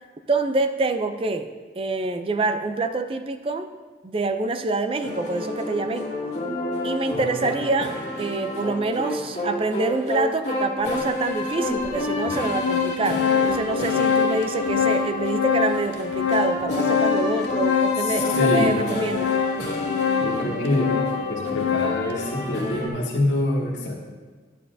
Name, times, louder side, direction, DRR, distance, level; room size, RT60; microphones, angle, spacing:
voice 1, 0.3-1.5 1.8-3.7 4.0-6.1 6.8-19.3, right 3 dB, 30° right, 8 dB, 0.4 m, -26 dB
sound 1, 5.0-22.9, left 2 dB, 40° left, 1.9 m, -30 dB
voice 2, 7.1-7.5 18.0-19.0 20.2-21.0 21.3-23.9, left 1 dB, 90° left, -3 dB, 1.9 m, -26 dB
Organ, 10.9-11.0 11.8-11.9 12.3-22.1, left 7 dB, 65° left, 0.7 m, -25 dB
11.0 x 9.9 x 2.7 m, 1.4 s
head